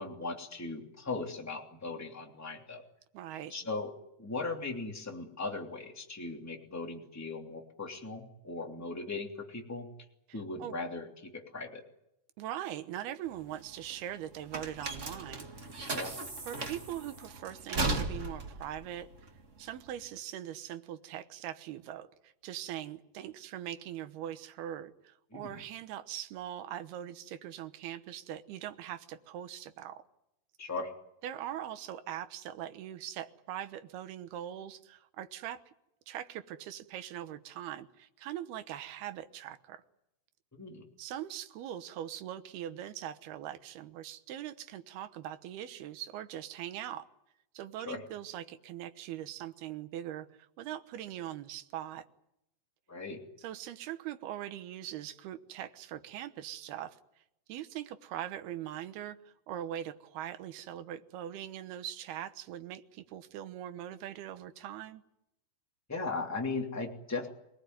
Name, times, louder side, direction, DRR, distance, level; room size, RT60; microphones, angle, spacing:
voice 1, 0.0-2.8 3.5-3.9 4.2-9.9 10.3-11.8 15.9-16.2 25.3-25.6 30.6-30.9 40.5-40.9 47.9-48.0 52.9-53.2 65.9-67.3, left 3 dB, 5° left, 1 dB, 2.3 m, -38 dB
voice 2, 3.1-3.5 10.6-10.7 12.4-15.7 16.5-19.3 19.6-30.0 31.2-35.6 36.1-39.8 41.0-47.1 47.5-50.3 50.6-52.1 53.4-57.0 57.5-65.0, right 11 dB, 75° right, 11 dB, 3.0 m, -41 dB
Screen Door, 13.2-20.0, right 2 dB, 35° right, 1.2 m, -37 dB
26.0 x 19.0 x 9.5 m, 0.84 s
omnidirectional pair, 4.7 m